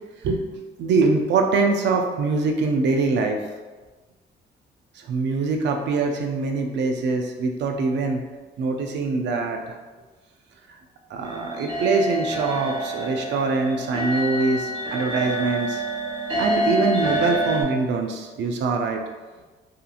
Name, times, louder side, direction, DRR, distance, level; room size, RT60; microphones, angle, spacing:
voice 1, 0.8-3.4 5.0-8.2 8.6-9.8 11.1-15.8 16.4-19.0, right 4 dB, 65° right, 3 dB, 0.4 m, -23 dB
sound 1, 11.2-17.6, right 1 dB, 30° right, 1.4 m, -27 dB
2.8 x 2.4 x 2.4 m, 1.3 s
cardioid pair, 90°, 20 cm